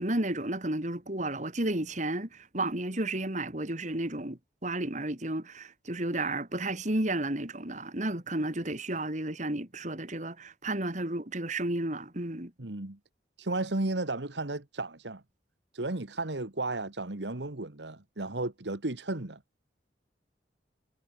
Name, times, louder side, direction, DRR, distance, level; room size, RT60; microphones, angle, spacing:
voice 1, 0.0-12.5, right 1 dB, 45° right, 3.1 m, -32 dB
voice 2, 12.6-13.0 13.4-15.2 15.7-19.4, right 2 dB, 80° right, 1.8 m, -34 dB
head